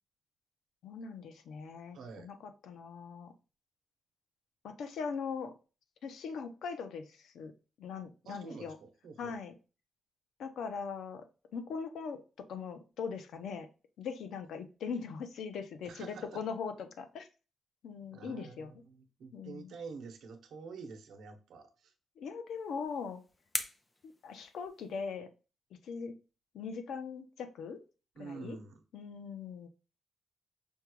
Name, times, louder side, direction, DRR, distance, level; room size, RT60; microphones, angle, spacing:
voice 1, 0.8-3.3 4.6-5.5 6.0-7.5 7.8-8.8 9.2-9.5 10.4-11.3 11.5-12.2 12.5-13.7 14.0-17.3 17.8-18.7 19.3-19.7 22.2-23.2 24.0-25.3 25.8-26.1 26.5-27.8 28.2-28.6 28.9-29.7, left 5 dB, 80° left, 0.7 m, -40 dB
voice 2, 1.9-2.3 8.2-9.4 15.8-16.4 18.1-21.9 28.1-28.8, right 4 dB, 80° right, 0.8 m, -47 dB
sound 1, 22.5-25.1, left 1 dB, 15° left, 0.5 m, -43 dB
5.4 x 2.3 x 3.0 m
wide cardioid pair, 165°, 0 cm